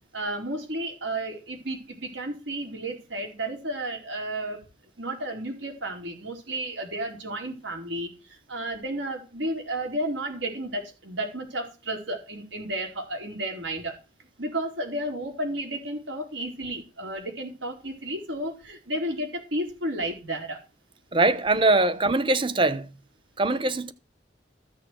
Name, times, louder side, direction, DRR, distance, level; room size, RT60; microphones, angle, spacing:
voice 1, 0.1-4.6 5.0-8.1 8.5-13.9 14.4-20.6, right 1 dB, 85° right, 4.5 m, -32 dB
voice 2, 21.1-22.9 23.4-23.9, right 2 dB, 25° right, 0.8 m, -22 dB
14.5 x 6.7 x 6.1 m
head